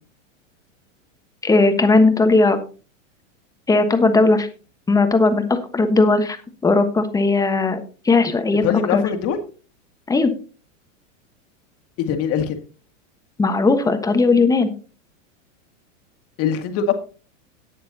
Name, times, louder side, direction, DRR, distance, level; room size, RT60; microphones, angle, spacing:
voice 1, 1.4-2.6 3.7-4.5 4.9-6.4 6.6-7.8 8.0-8.6 8.9-9.0 10.1-10.3 13.4-14.7, left 3 dB, 10° left, 8 dB, 1.3 m, -17 dB
voice 2, 8.6-9.4 12.0-12.6 16.4-16.9, left 8 dB, 35° left, 6 dB, 2.1 m, -22 dB
18.0 x 6.8 x 2.8 m, 0.36 s
supercardioid pair, 140°, 39 cm